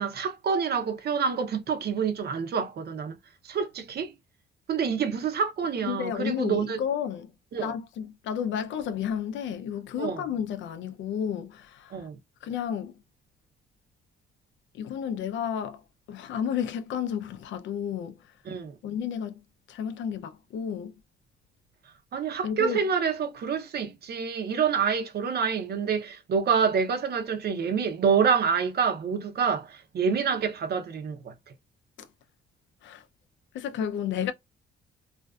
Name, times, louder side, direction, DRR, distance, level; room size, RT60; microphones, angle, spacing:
voice 1, 0.0-3.2 3.4-4.1 4.7-6.8 7.5-7.7 10.0-10.2 11.9-12.2 18.5-18.7 22.1-31.3, right 6 dB, 55° right, 0.6 m, -27 dB
voice 2, 5.8-7.3 7.6-11.9 12.4-12.9 14.7-15.8 16.1-18.1 18.8-19.4 19.7-20.9 22.4-22.8 32.8-33.0 33.5-34.3, left 8 dB, 70° left, 0.4 m, -31 dB
2.5 x 2.3 x 2.2 m
cardioid pair, 90°, 20 cm